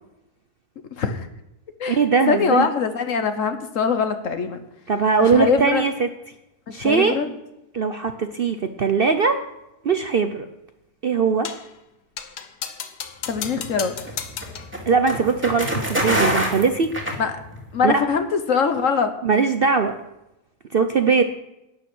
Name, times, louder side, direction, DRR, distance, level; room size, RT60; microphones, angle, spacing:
voice 1, 0.9-1.3 1.8-4.6 5.2-5.9 6.7-7.3 13.3-14.0 17.2-17.3 17.7-19.1, left 5 dB, 55° left, 8 dB, 1.3 m, -23 dB
voice 2, 1.9-2.7 4.9-6.1 6.7-7.2 7.7-9.4 9.8-10.5 11.0-11.5 14.9-16.9 17.8-17.9 19.2-19.9 20.7-21.2, right 5 dB, 50° right, 7 dB, 0.7 m, -20 dB
sound 1, 11.4-11.7 12.2-14.8, left 8 dB, 75° left, 1.5 m, -34 dB
sound 2, 13.3-17.8, equal, 5° right, 2.5 m, -25 dB
12.0 x 9.7 x 6.2 m, 0.91 s
omnidirectional pair, 1.7 m